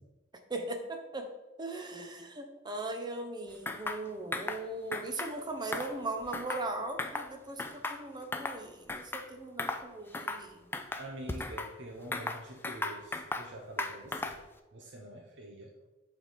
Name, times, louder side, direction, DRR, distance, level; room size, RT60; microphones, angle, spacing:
voice 1, 0.5-1.3 1.6-10.6, right 2 dB, 20° right, 5 dB, 0.7 m, -39 dB
sound 1, 3.7-4.0 4.3-4.6 4.9-5.3 5.7-6.7 7.0-7.3 7.6-8.6 8.9-9.3 9.6-9.8 10.1-10.4 10.7-11.7 12.1-13.5 13.8-14.5, left 2 dB, 10° left, 0.3 m, -36 dB
voice 2, 11.0-14.4 14.7-15.7, right 1 dB, 65° right, 0 dB, 0.8 m, -45 dB
7.7 x 3.5 x 4.1 m, 1.1 s
head